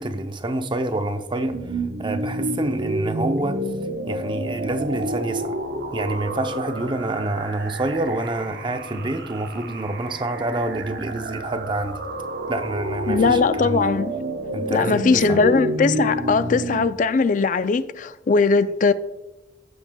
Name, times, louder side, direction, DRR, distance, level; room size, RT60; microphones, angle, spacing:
voice 1, 0.0-3.6 4.1-5.6 5.9-12.0 12.5-13.9 14.5-15.4, right 2 dB, 30° right, 0.6 m, -27 dB
sound 1, 1.5-16.9, right 1 dB, 65° right, 0.9 m, -29 dB
voice 2, 13.1-14.1 14.7-18.9, left 4 dB, 45° left, 0.4 m, -20 dB
15.5 x 7.4 x 2.3 m
head